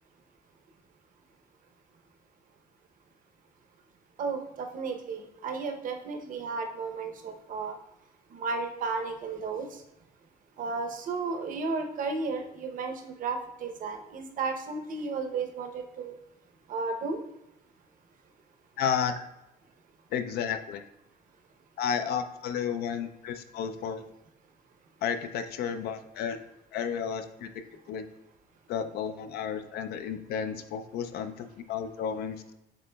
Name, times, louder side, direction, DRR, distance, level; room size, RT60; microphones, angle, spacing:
voice 1, 4.2-7.8 8.3-9.7 10.6-16.2 16.7-17.2, right 4 dB, 55° right, 5 dB, 0.7 m, -33 dB
voice 2, 18.8-19.1 20.1-20.8 21.8-24.0 25.0-26.4 26.7-27.5 27.9-28.1 28.7-32.4, left 7 dB, 70° left, 9 dB, 0.4 m, -32 dB
7.4 x 2.9 x 2.2 m, 0.88 s
cardioid pair, 110°, 17 cm